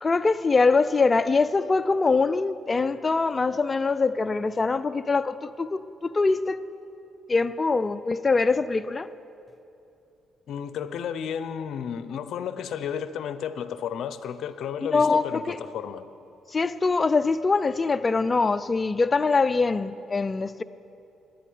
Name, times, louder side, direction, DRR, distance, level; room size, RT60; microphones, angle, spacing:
voice 1, 0.0-6.6 7.3-9.1 14.9-15.6 16.5-20.6, left 4 dB, 30° left, 0.5 m, -23 dB
voice 2, 10.5-16.1, left 8 dB, 70° left, 0.6 m, -32 dB
10.0 x 10.0 x 9.5 m
cardioid pair, 90°, 0 cm